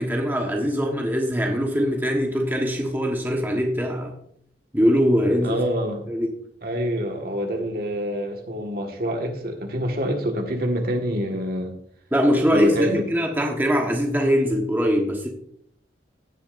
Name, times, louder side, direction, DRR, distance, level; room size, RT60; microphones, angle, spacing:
voice 1, 0.0-4.1 4.7-5.6 6.1-6.3 12.1-15.3, equal, 10° right, 1 dB, 1.2 m, -22 dB
voice 2, 5.4-6.1 6.6-11.7 12.5-13.0, equal, 55° right, 3 dB, 1.6 m, -26 dB
16.5 x 7.0 x 2.6 m, 0.66 s
head